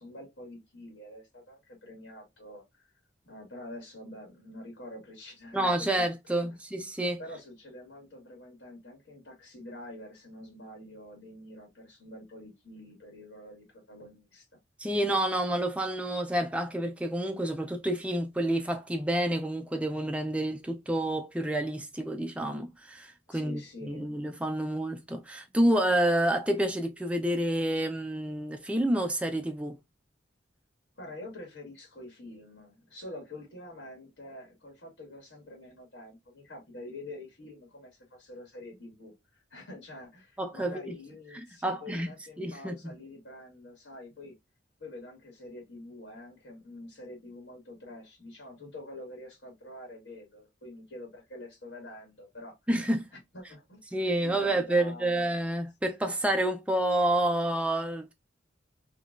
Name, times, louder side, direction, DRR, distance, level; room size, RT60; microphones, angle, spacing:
voice 1, 0.0-2.9 3.2-6.1 6.4-6.6 7.2-14.4 23.3-24.2 31.0-44.3 44.8-52.5 53.3-53.8 54.2-55.3, left 1 dB, 80° left, 1.5 m, -46 dB
voice 2, 5.5-7.2 14.8-29.8 40.4-40.9 41.6-42.1 42.4-42.7 52.7-53.1 53.9-58.1, right 1 dB, 5° right, 0.4 m, -29 dB
3.7 x 2.3 x 2.3 m
head